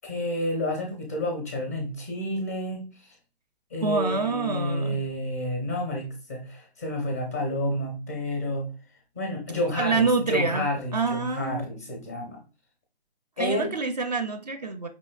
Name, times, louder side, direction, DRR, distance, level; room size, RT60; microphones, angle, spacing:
voice 1, 0.0-3.1 3.7-8.7 9.2-12.4 13.4-13.7, left 1 dB, 15° left, 1 dB, 0.5 m, -30 dB
voice 2, 3.8-5.0 9.8-11.7 13.4-14.9, right 4 dB, 40° right, 8 dB, 0.4 m, -27 dB
5.1 x 3.0 x 2.3 m, 0.35 s
figure-of-eight pair, 140°, 32 cm